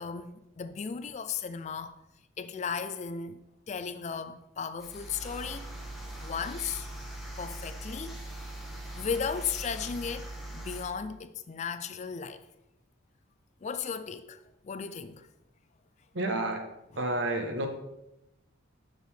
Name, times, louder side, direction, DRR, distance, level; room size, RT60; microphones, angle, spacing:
voice 1, 0.0-2.0 2.4-3.4 3.7-5.7 6.2-6.9 7.4-8.2 8.9-12.4 13.6-15.3, left 6 dB, 35° left, 0.3 m, -35 dB
sound 1, 4.8-10.9, right 1 dB, ahead, 1.0 m, -41 dB
voice 2, 16.1-16.6 16.9-17.7, right 2 dB, 65° right, 1.1 m, -30 dB
6.5 x 6.4 x 3.3 m
head